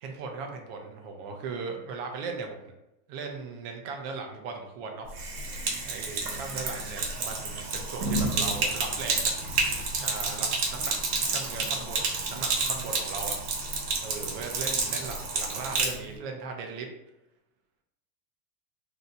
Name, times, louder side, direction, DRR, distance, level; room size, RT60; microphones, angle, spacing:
voice 1, 0.0-2.7 3.1-5.1 5.8-9.3 10.0-11.0 11.3-13.5 14.0-16.9, right 4 dB, 45° right, 3 dB, 0.6 m, -38 dB
Sink (filling or washing), 5.1-16.0, right 3 dB, 80° right, 1.1 m, -30 dB
2.8 x 2.2 x 3.9 m, 0.92 s
supercardioid pair, 155°, 45 cm